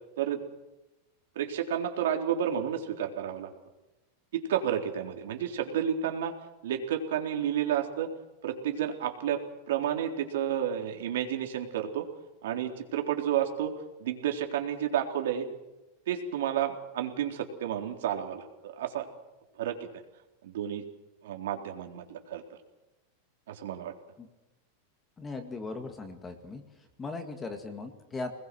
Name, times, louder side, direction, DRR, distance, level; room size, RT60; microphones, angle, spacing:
voice 1, 1.4-3.5 4.3-6.4 6.6-8.1 8.4-12.1 12.4-15.5 16.1-19.1 19.6-19.9 20.4-20.8 21.2-22.6 23.5-23.9, right 9 dB, 75° right, 4 dB, 3.8 m, -31 dB
voice 2, 25.2-26.6 27.0-28.3, left 3 dB, 10° left, 6 dB, 2.0 m, -38 dB
26.0 x 21.0 x 6.2 m, 1.0 s
supercardioid pair, 175°, 0 cm